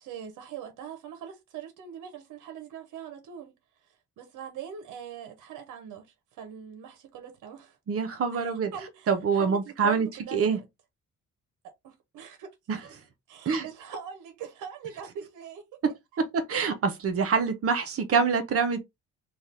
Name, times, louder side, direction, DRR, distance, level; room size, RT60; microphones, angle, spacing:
voice 1, 0.0-3.5 3.8-6.1 6.3-7.8 8.3-10.7 11.8-12.5 13.3-15.6, right 8 dB, 85° right, 0.8 m, -42 dB
voice 2, 7.9-8.7 9.1-10.6 12.7-12.8 13.5-13.6 16.3-18.8, right 5 dB, 50° right, 0.7 m, -25 dB
2.6 x 2.4 x 3.3 m
cardioid pair, 90°, 30 cm